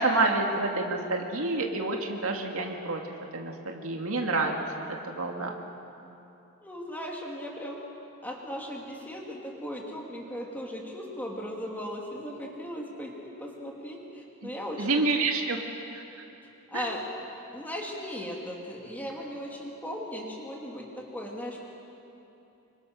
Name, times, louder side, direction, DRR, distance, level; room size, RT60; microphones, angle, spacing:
voice 1, 0.0-3.0 3.3-4.6 4.9-5.6 14.4-14.5 14.8-15.6 15.9-16.0 16.7-16.9, right 3 dB, 70° right, 2 dB, 2.3 m, -28 dB
voice 2, 6.6-7.8 8.2-15.1 16.7-17.0 17.5-21.6, equal, 10° left, -2 dB, 3.0 m, -37 dB
27.5 x 24.5 x 6.4 m, 2.9 s
head